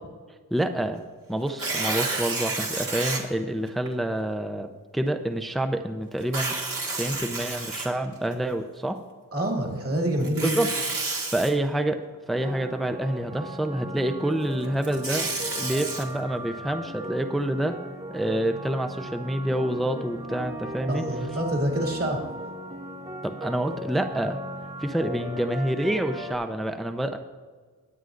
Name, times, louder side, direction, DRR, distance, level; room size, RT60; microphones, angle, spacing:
voice 1, 0.5-1.0 1.3-6.6 6.9-9.0 10.4-10.7 11.3-12.0 12.3-15.3 15.6-17.7 18.1-21.0 23.2-24.4 24.8-27.2, right 1 dB, ahead, 7 dB, 0.6 m, -27 dB
Tearing, 1.5-3.2 3.9-4.0 6.2-8.3 10.2-11.5 14.6-16.0, right 3 dB, 60° right, 2.1 m, -30 dB
voice 2, 9.3-10.6 20.9-22.2, right 1 dB, 40° right, 0 dB, 2.3 m, -27 dB
sound 1, 12.4-26.4, equal, 20° right, 1.5 m, -37 dB
20.5 x 8.0 x 2.6 m, 1.5 s
cardioid pair, 60°, 37 cm